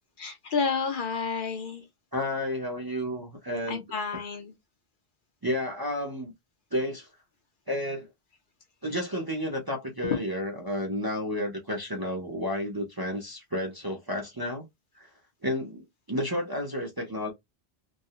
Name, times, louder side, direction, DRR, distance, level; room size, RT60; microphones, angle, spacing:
voice 1, 0.2-1.9 3.7-4.5, left 5 dB, 60° left, 0.7 m, -30 dB
voice 2, 2.1-3.8 4.1-4.2 5.4-6.3 6.7-7.1 7.7-8.1 8.8-14.7 15.0-15.1 15.4-17.3, left 1 dB, 30° right, 0.5 m, -31 dB
2.4 x 2.0 x 2.7 m
omnidirectional pair, 1.1 m